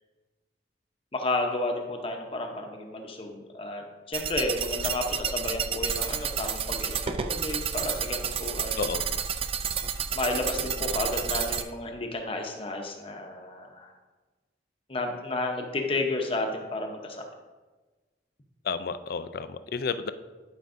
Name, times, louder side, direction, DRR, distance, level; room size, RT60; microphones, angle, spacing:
voice 1, 1.1-8.9 10.1-13.9 14.9-17.2, left 2 dB, 30° left, 3 dB, 0.8 m, -32 dB
sound 1, 4.1-11.6, right 7 dB, 30° right, 0.3 m, -30 dB
voice 2, 18.6-20.1, left 5 dB, 55° left, 12 dB, 0.3 m, -31 dB
11.0 x 5.2 x 2.6 m, 1.3 s
head